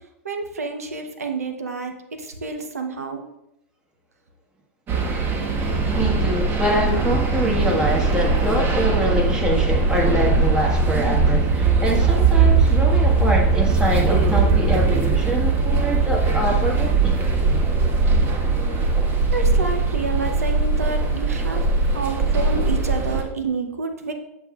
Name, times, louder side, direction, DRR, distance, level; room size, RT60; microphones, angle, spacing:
voice 1, 0.2-3.2 19.3-21.6 21.9-24.1, right 4 dB, 85° right, 0.9 m, -29 dB
sound 1, 4.9-23.2, right 4 dB, 30° right, 1.1 m, -20 dB
voice 2, 5.9-17.2, equal, 10° right, 1.6 m, -24 dB
8.1 x 7.0 x 2.4 m
hypercardioid pair, 100°, 8 cm